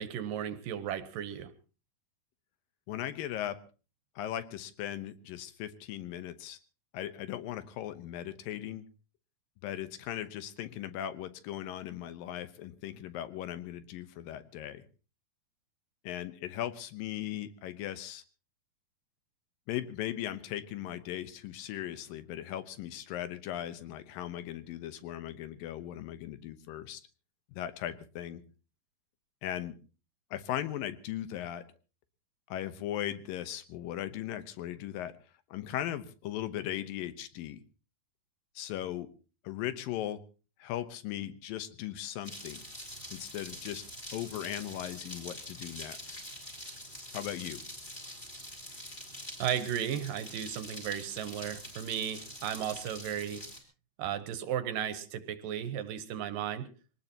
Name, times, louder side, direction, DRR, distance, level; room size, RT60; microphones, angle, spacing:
voice 1, 0.0-1.5 49.4-53.4 54.0-56.7, right 9 dB, 75° right, 11 dB, 2.6 m, -35 dB
voice 2, 2.9-3.6 4.2-6.6 6.9-8.9 9.6-14.8 16.0-18.2 19.7-27.0 27.5-28.4 29.4-29.8 30.3-31.6 32.5-35.2 35.5-37.6 38.6-39.1 39.4-40.2 40.6-42.6 43.1-43.8 44.1-46.2 47.1-47.6, left 12 dB, 75° left, 12 dB, 2.6 m, -38 dB
sound 1, 42.2-53.6, equal, 15° left, 4.2 m, -45 dB
24.0 x 19.0 x 2.9 m, 0.34 s
omnidirectional pair, 4.3 m